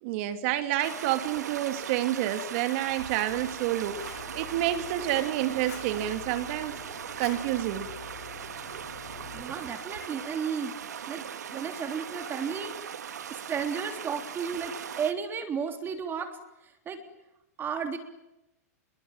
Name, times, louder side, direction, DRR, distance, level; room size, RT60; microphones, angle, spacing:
voice 1, 0.0-4.0 4.3-6.8 7.2-7.9, right 13 dB, 50° right, 2.6 m, -29 dB
sound 1, 0.8-15.1, right 8 dB, 85° right, 2.3 m, -39 dB
Fire, 3.3-9.4, left 8 dB, 70° left, 3.5 m, -47 dB
voice 2, 9.3-11.2 11.5-12.8 13.3-16.4 16.9-17.0 17.6-18.0, right 6 dB, 25° right, 3.5 m, -33 dB
27.5 x 23.0 x 9.1 m
hypercardioid pair, 125°, 9 cm